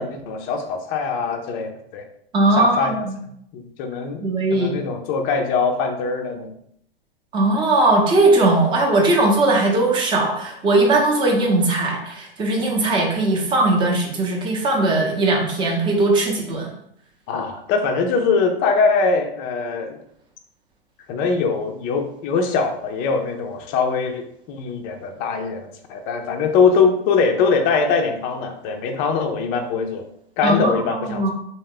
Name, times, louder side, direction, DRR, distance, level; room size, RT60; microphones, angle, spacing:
voice 1, 0.0-2.0 2.5-3.0 3.5-6.6 17.3-20.0 21.1-30.0 30.4-31.3, left 5 dB, 30° left, 4 dB, 0.5 m, -22 dB
voice 2, 2.3-3.2 4.2-4.7 7.3-16.7 30.4-30.8 31.1-31.3, right 2 dB, 15° right, 0 dB, 0.7 m, -19 dB
3.4 x 2.1 x 3.7 m, 0.72 s
figure-of-eight pair, 100°, 29 cm